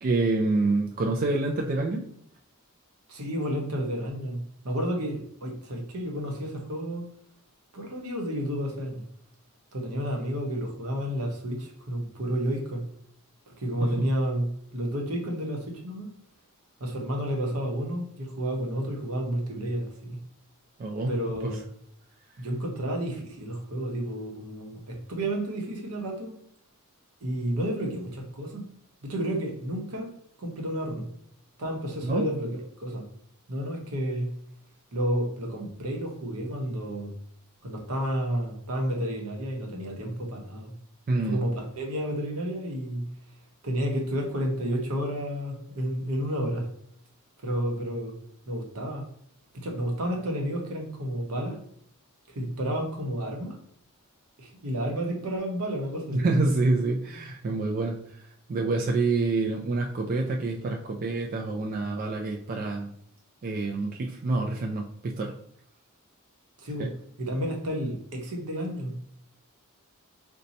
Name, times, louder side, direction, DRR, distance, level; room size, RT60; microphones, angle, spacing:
voice 1, 0.0-2.0 13.8-13.9 20.8-21.1 21.4-21.6 32.0-32.3 41.1-41.4 56.1-58.0 58.5-62.9 63.4-65.3 66.8-66.9, right 3 dB, 40° right, 0 dB, 0.3 m, -27 dB
voice 2, 3.1-7.1 7.7-9.0 9.7-12.9 13.6-16.1 16.8-20.2 21.1-21.6 22.4-26.3 27.2-28.6 29.0-31.1 31.6-33.1 33.5-34.3 34.9-37.1 37.6-40.7 41.2-43.0 43.6-46.7 47.4-48.1 48.5-49.1 49.6-51.6 52.3-53.6 54.4-56.5 66.6-66.9 67.2-68.9, equal, 75° right, 1 dB, 0.9 m, -31 dB
2.7 x 2.2 x 4.0 m, 0.68 s
head